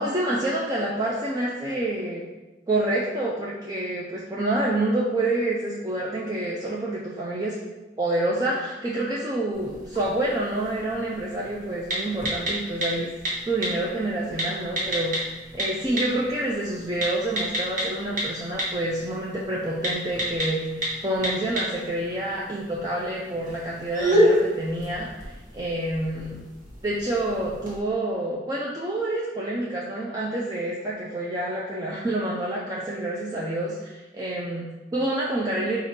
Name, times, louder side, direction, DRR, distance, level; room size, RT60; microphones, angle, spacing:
voice 1, 0.0-2.2 2.7-7.6 8.0-13.1 13.4-26.3 26.8-35.8, right 1 dB, 20° right, -4 dB, 0.4 m, -28 dB
sound 1, 9.5-27.8, equal, 45° right, 1.2 m, -30 dB
4.2 x 2.5 x 4.5 m, 1.1 s
head